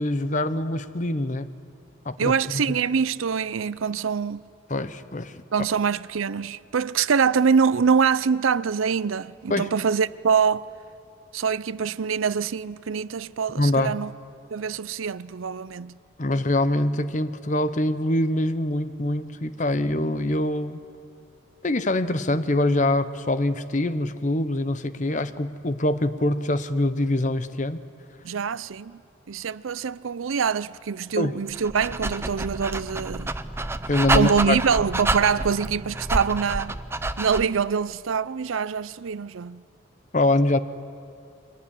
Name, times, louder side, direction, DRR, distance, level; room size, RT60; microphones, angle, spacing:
voice 1, 0.0-1.5 2.0-2.8 4.7-5.4 9.5-9.7 13.6-13.9 16.2-20.8 21.6-27.8 31.2-31.3 33.9-34.6 40.1-40.6, left 1 dB, 40° left, 0.8 m, -24 dB
voice 2, 2.2-4.4 5.5-10.7 11.3-14.1 14.5-16.0 19.7-19.9 28.2-29.0 29.3-33.4 34.1-36.8 37.2-39.6, right 6 dB, 85° right, 0.5 m, -24 dB
Dog, 31.5-37.6, right 2 dB, 10° right, 0.5 m, -28 dB
24.0 x 19.0 x 10.0 m
head